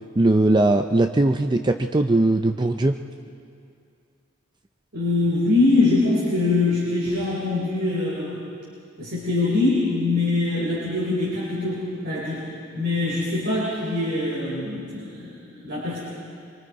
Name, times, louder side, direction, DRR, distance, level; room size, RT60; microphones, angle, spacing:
voice 1, 0.2-3.0, right 2 dB, 20° right, 6 dB, 0.5 m, -19 dB
voice 2, 4.9-8.4 9.0-12.5 12.7-16.0, left 3 dB, 55° right, -5 dB, 3.9 m, -23 dB
24.5 x 24.0 x 4.8 m, 2.4 s
head